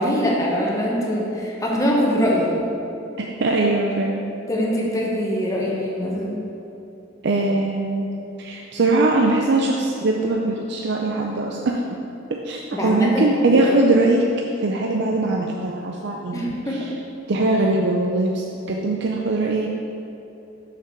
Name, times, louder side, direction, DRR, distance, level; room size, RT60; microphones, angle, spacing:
voice 1, 0.0-2.6 4.5-6.4 12.7-13.6 16.3-16.9, equal, 15° left, -3 dB, 1.3 m, -23 dB
voice 2, 3.4-4.2 7.2-8.1 8.4-11.8 12.3-14.2 14.6-16.5 17.3-19.7, right 2 dB, 60° right, 0 dB, 0.5 m, -21 dB
5.9 x 5.9 x 6.0 m, 2.9 s
head